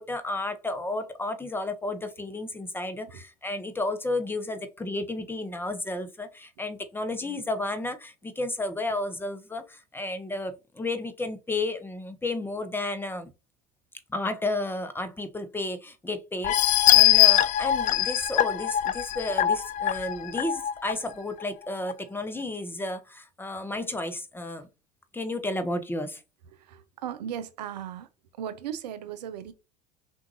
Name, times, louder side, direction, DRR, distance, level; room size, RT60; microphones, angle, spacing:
voice 1, 0.0-13.3 14.1-24.7 25.1-26.2, left 2 dB, 10° left, 0.9 m, -32 dB
sound 1, 16.4-20.9 21.4-21.5 21.9-22.0, left 13 dB, 40° left, 0.4 m, -22 dB
voice 2, 26.5-28.1 28.4-29.5, right 9 dB, 75° right, 0.6 m, -37 dB
6.0 x 2.6 x 2.7 m
hypercardioid pair, 65°, 21 cm